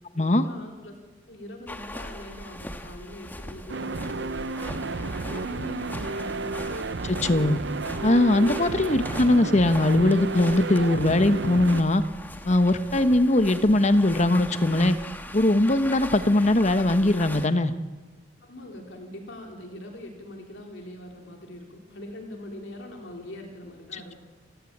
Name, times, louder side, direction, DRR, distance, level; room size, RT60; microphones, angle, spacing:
voice 1, 0.2-0.9 1.3-6.6 18.4-24.1, left 1 dB, 70° left, 2 dB, 3.4 m, -42 dB
sound 1, 1.7-17.5, left 1 dB, 10° left, 1.4 m, -40 dB
sound 2, 3.7-11.8, right 3 dB, 60° right, 0.7 m, -32 dB
voice 2, 7.0-7.6 8.0-12.0 12.5-15.0 15.3-17.7 23.9-24.0, left 1 dB, 35° left, 11 dB, 1.1 m, -21 dB
29.5 x 14.0 x 8.7 m, 1.3 s
head